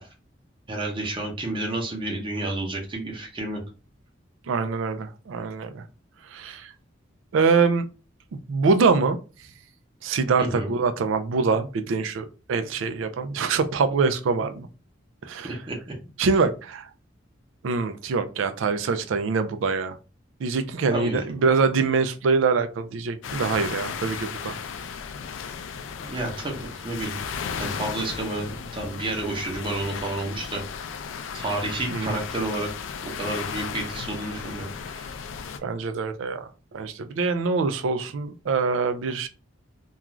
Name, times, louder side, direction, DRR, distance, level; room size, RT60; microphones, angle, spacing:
voice 1, 0.7-3.6 10.4-10.7 15.4-15.9 20.9-21.3 26.0-27.3 27.6-30.6 31.3-32.7 33.0-35.1, right 2 dB, 25° right, 0 dB, 0.7 m, -30 dB
voice 2, 4.5-5.8 6.3-6.7 7.3-7.8 8.3-9.2 10.0-14.7 15.2-15.5 16.2-16.9 17.6-19.9 20.4-24.6 31.9-32.2 35.6-39.3, right 4 dB, 85° right, 10 dB, 0.4 m, -24 dB
sound 1, 23.2-35.6, left 6 dB, 85° left, 0.3 m, -35 dB
2.4 x 2.3 x 3.0 m, 0.34 s
head